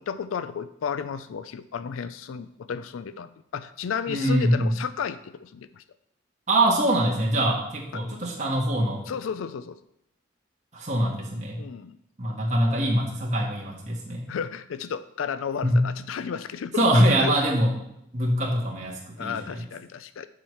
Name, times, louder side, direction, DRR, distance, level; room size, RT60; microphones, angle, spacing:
voice 1, 0.0-5.8 7.9-8.0 9.1-9.8 11.6-12.0 14.3-17.3 19.2-20.3, left 7 dB, 85° left, 13 dB, 0.4 m, -33 dB
voice 2, 4.1-4.8 6.5-9.1 10.7-11.6 12.2-14.3 15.6-15.8 16.8-17.7 18.1-19.7, right 1 dB, 35° right, -3 dB, 1.6 m, -23 dB
7.3 x 4.8 x 5.6 m, 0.79 s
head